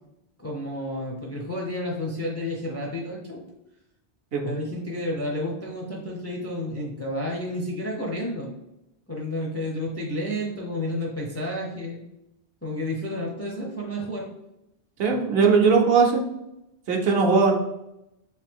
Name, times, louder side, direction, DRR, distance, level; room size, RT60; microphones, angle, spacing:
voice 1, 0.4-3.4 4.4-8.5 9.1-12.0 12.6-14.3, left 1 dB, 25° left, -2 dB, 0.4 m, -31 dB
voice 2, 15.0-16.2 16.9-17.5, right 5 dB, 65° right, 2 dB, 0.8 m, -19 dB
3.1 x 2.7 x 3.4 m, 0.88 s
omnidirectional pair, 1.1 m